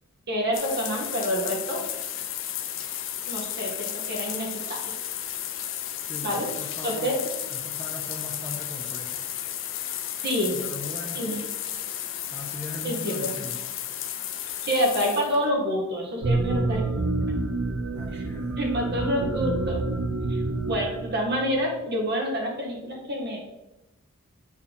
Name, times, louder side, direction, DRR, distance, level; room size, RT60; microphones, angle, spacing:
voice 1, 0.3-1.8 3.3-4.9 6.2-6.5 6.8-7.2 10.2-10.7 11.1-11.5 12.8-13.3 14.7-16.8 18.1-19.8 20.3-20.4 20.7-23.4, equal, 50° right, -1 dB, 1.7 m, -28 dB
sound 1, 0.5-15.5, left 11 dB, 60° left, 0.6 m, -33 dB
voice 2, 6.1-7.2 7.5-9.2 10.5-11.2 12.3-13.6 17.9-18.6, left 1 dB, 10° left, 0 dB, 0.8 m, -39 dB
sound 2, 16.2-21.6, right 2 dB, 75° right, 0.7 m, -28 dB
8.0 x 4.5 x 3.7 m, 0.98 s
head